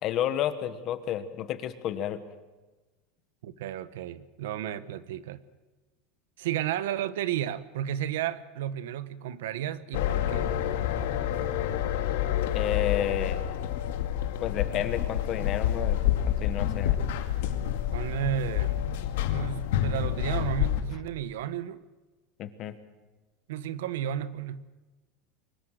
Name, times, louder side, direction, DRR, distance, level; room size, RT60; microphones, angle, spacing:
voice 1, 0.0-2.2 12.5-13.4 14.4-16.0 16.3-17.0 22.4-22.8, left 11 dB, 35° left, 11 dB, 1.4 m, -31 dB
voice 2, 3.4-5.4 6.4-10.5 17.9-18.9 19.3-21.8 23.5-24.6, right 10 dB, 90° right, 14 dB, 1.1 m, -33 dB
sound 1, 9.9-20.8, left 11 dB, 80° left, 2.2 m, -28 dB
23.5 x 21.0 x 6.5 m, 1.2 s
supercardioid pair, 170°, 0 cm